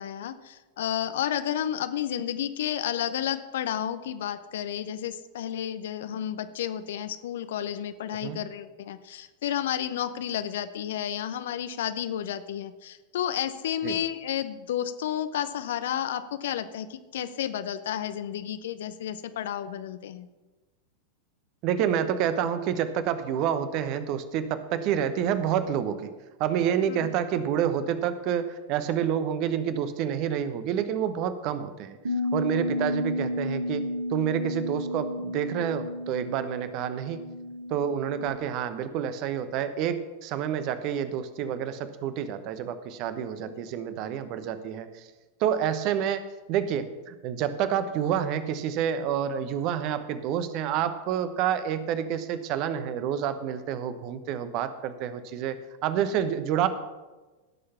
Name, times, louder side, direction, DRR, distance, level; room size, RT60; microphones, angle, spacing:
voice 1, 0.0-20.3 26.9-27.1 43.4-43.6, left 10 dB, 60° left, 12 dB, 0.7 m, -31 dB
voice 2, 21.6-26.1 26.4-32.0 32.3-37.2 37.7-45.1 45.4-56.7, right 9 dB, 40° right, 12 dB, 1.0 m, -28 dB
Bass guitar, 32.0-38.3, left 1 dB, 70° right, 2.1 m, -32 dB
16.5 x 6.7 x 5.8 m, 1.2 s
figure-of-eight pair, 90°, 0 cm